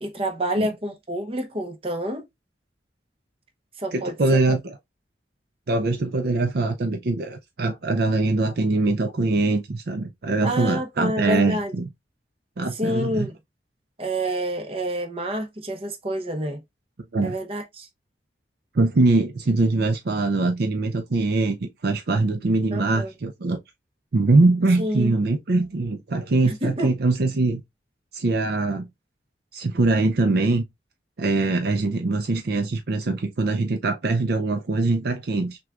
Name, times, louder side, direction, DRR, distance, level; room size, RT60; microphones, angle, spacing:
voice 1, 0.0-2.2 3.8-4.6 10.4-11.7 12.7-13.3 14.0-16.6 17.2-17.9 22.7-23.1 24.8-25.1 26.4-26.9, right 1 dB, 30° right, 0.8 m, -28 dB
voice 2, 3.9-4.8 5.7-11.9 12.6-13.3 17.1-17.4 18.7-23.6 24.1-27.6 28.1-28.9 29.5-30.6 31.2-35.6, right 2 dB, 60° right, 0.5 m, -22 dB
6.1 x 2.3 x 2.4 m
head